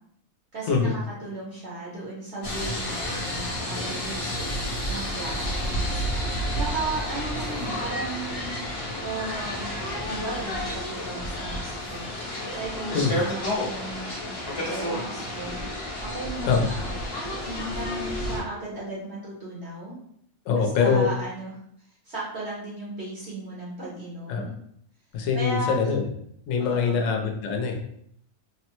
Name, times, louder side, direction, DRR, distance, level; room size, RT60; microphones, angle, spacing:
voice 1, 0.5-4.3 4.9-6.1 6.5-8.6 9.0-9.7 10.0-12.1 12.5-15.6 16.0-16.9 17.4-20.0 20.5-21.5 22.0-24.5 25.3-25.8 26.6-27.0, right 2 dB, 55° right, -6 dB, 0.9 m, -35 dB
sound 1, 2.4-18.4, equal, 50° left, 0.4 m, -31 dB
voice 2, 20.5-21.1 24.3-24.4 25.1-26.1 26.5-27.7, left 5 dB, 65° left, 2 dB, 0.9 m, -23 dB
3.2 x 2.0 x 2.9 m, 0.70 s
omnidirectional pair, 1.6 m